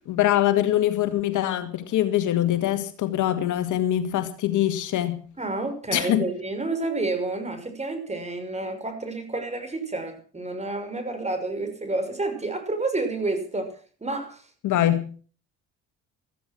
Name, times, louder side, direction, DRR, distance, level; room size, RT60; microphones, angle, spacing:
voice 1, 0.1-5.2 5.9-6.3 14.6-15.1, left 12 dB, 65° left, 2.1 m, -23 dB
voice 2, 5.4-13.7 14.0-14.4, right 2 dB, 20° right, 5.9 m, -29 dB
15.0 x 14.0 x 6.1 m
supercardioid pair, 70°, 34 cm